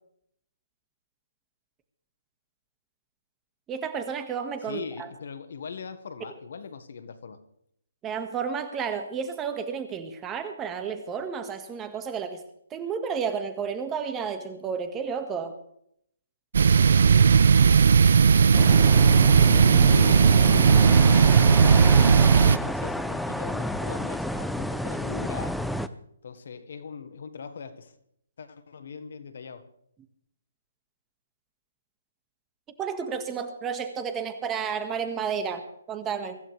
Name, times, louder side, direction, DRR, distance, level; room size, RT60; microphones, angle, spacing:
voice 1, 3.7-5.1 8.0-12.4 12.7-15.6 32.8-36.4, right 6 dB, 15° right, 8 dB, 1.8 m, -31 dB
voice 2, 4.6-7.4 19.2-25.6 26.2-27.9 28.4-29.7, left 6 dB, 60° left, 10 dB, 1.7 m, -40 dB
sound 1, 16.5-22.6, right 6 dB, 60° right, 0.5 m, -17 dB
sound 2, 18.5-25.9, left 1 dB, ahead, 0.6 m, -31 dB
24.0 x 15.0 x 3.4 m, 0.71 s
figure-of-eight pair, 135°, 0 cm